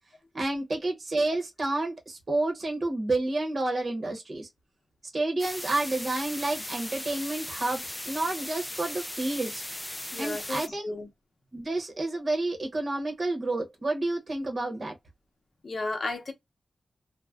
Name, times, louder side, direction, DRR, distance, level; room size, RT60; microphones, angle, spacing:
voice 1, 0.3-4.5 5.1-9.6 10.2-10.8 11.5-14.9, right 2 dB, 45° right, 0.9 m, -30 dB
sound 1, 5.4-10.7, left 1 dB, 10° left, 0.3 m, -38 dB
voice 2, 10.1-11.1 15.6-16.3, left 2 dB, 50° left, 0.8 m, -33 dB
2.5 x 2.1 x 3.4 m
wide cardioid pair, 125°, 0 cm